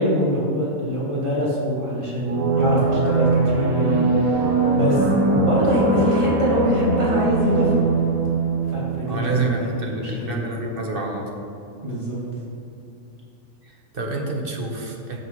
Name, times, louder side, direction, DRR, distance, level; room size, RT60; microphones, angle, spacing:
voice 1, 0.0-5.1 5.3-7.9 8.7-10.4 11.8-12.2, equal, 20° right, -7 dB, 2.4 m, -23 dB
sound 1, 2.3-9.7, right 3 dB, 80° right, 1.6 m, -22 dB
voice 2, 9.0-11.2 13.6-15.2, right 2 dB, 45° right, 0 dB, 1.3 m, -28 dB
15.5 x 6.7 x 3.1 m, 2.7 s
omnidirectional pair, 1.4 m